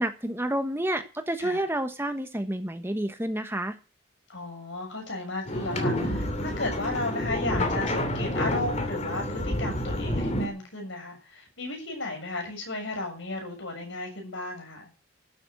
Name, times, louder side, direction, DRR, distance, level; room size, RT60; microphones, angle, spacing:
voice 1, 0.0-3.8, right 1 dB, 10° right, 7 dB, 1.2 m, -29 dB
voice 2, 4.3-14.8, left 2 dB, 65° left, 2 dB, 7.0 m, -34 dB
sound 1, 5.5-10.5, left 1 dB, 35° left, 2.8 m, -29 dB
12.0 x 8.9 x 7.8 m, 0.32 s
head